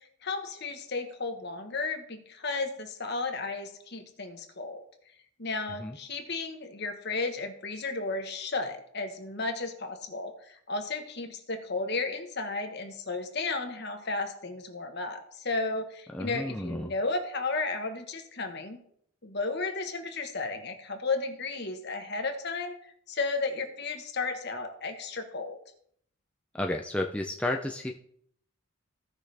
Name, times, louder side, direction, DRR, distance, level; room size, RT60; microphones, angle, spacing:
voice 1, 0.2-4.8 5.4-18.8 19.2-25.6, left 3 dB, 50° left, 5 dB, 1.3 m, -33 dB
voice 2, 16.1-16.9 26.5-27.9, left 1 dB, 5° left, 1 dB, 0.5 m, -32 dB
16.5 x 6.0 x 3.4 m, 0.67 s
head